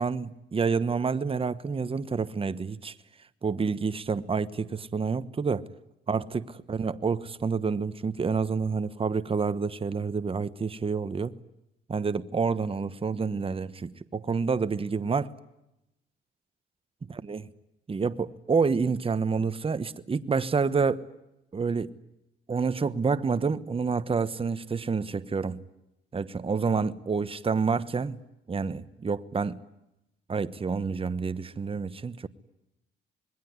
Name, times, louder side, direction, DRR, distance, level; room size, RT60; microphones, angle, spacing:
voice 1, 0.0-2.9 3.4-5.7 6.1-11.4 11.9-15.3 17.1-17.4 17.9-21.0 21.5-21.9 22.5-25.6 26.1-28.2 28.5-29.6 30.3-32.3, right 5 dB, 30° right, 1.2 m, -28 dB
26.5 x 21.5 x 9.5 m
cardioid pair, 90°, 20 cm